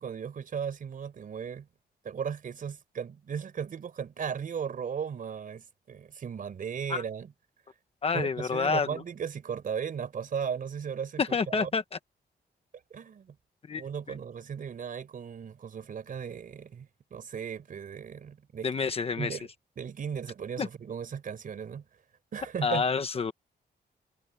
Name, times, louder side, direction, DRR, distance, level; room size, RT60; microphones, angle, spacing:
voice 1, 0.0-1.7 2.0-7.3 8.1-11.7 12.9-13.3 13.8-18.7 19.2-19.5 19.8-21.8 22.3-22.8, right 7 dB, 50° right, 4.7 m, -36 dB
voice 2, 8.0-9.0 11.2-12.0 13.7-13.8 18.6-19.4 20.6-20.7 22.6-23.3, left 5 dB, 35° left, 1.1 m, -28 dB
wide cardioid pair, 175°, 18 cm